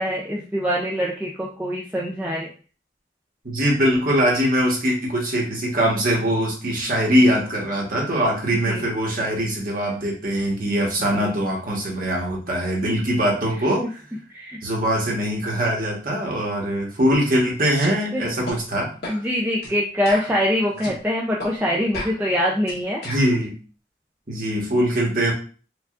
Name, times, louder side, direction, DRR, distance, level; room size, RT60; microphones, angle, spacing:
voice 1, 0.0-2.5 8.7-8.8 11.1-11.3 14.3-14.6 18.1-18.3 19.1-23.0, equal, 10° right, -4 dB, 0.4 m, -24 dB
voice 2, 3.4-13.8 14.6-18.9 23.0-23.5 24.3-25.3, equal, 50° right, -2 dB, 1.1 m, -22 dB
sound 1, 17.7-17.9 18.5-18.6 19.0-19.2 19.6-19.8 20.1-21.0 21.4-21.5 21.9-23.3, left 1 dB, 65° left, 1.1 m, -33 dB
4.6 x 2.4 x 2.4 m, 0.38 s
head